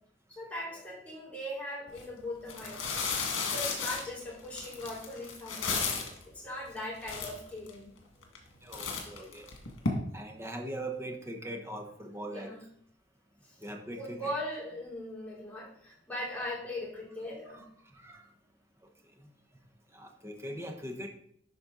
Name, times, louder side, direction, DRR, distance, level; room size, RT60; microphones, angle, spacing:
voice 1, 0.3-2.9 3.5-5.9 6.3-7.9 12.3-12.6 13.4-13.6 14.0-17.6, left 1 dB, 10° left, -7 dB, 3.6 m, -39 dB
sound 1, 1.9-2.0 2.5-6.2 6.8-6.9 7.0-7.7 8.2-8.5 8.7-9.9, left 5 dB, 85° left, 1.8 m, -34 dB
voice 2, 8.6-9.4 10.1-12.5 13.6-14.3 17.6-17.7 17.9-18.2 19.2-19.3 19.9-21.1, right 1 dB, 15° right, 3 dB, 1.0 m, -41 dB
12.0 x 4.4 x 3.9 m, 0.66 s
head